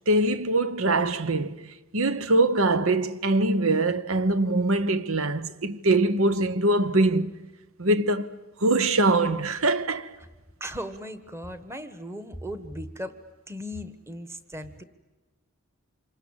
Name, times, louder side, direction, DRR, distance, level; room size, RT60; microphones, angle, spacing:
voice 1, 0.1-7.3 7.8-8.3 8.6-10.1, right 2 dB, 70° right, 1.1 m, -23 dB
voice 2, 10.6-13.2 13.5-14.8, equal, 10° right, 1.3 m, -37 dB
27.0 x 23.5 x 8.8 m
head